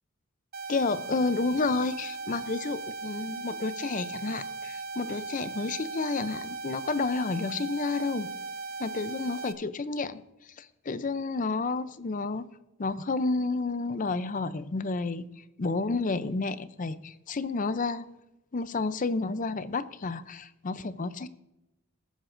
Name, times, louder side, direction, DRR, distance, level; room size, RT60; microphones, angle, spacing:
sound 1, 0.5-9.5, right 3 dB, 45° right, 0.6 m, -38 dB
voice 1, 0.7-8.3 8.8-10.2 10.6-12.5 12.8-15.2 15.6-18.1 18.5-21.3, left 3 dB, 40° left, 14 dB, 0.5 m, -30 dB
20.5 x 9.3 x 2.6 m, 0.97 s
head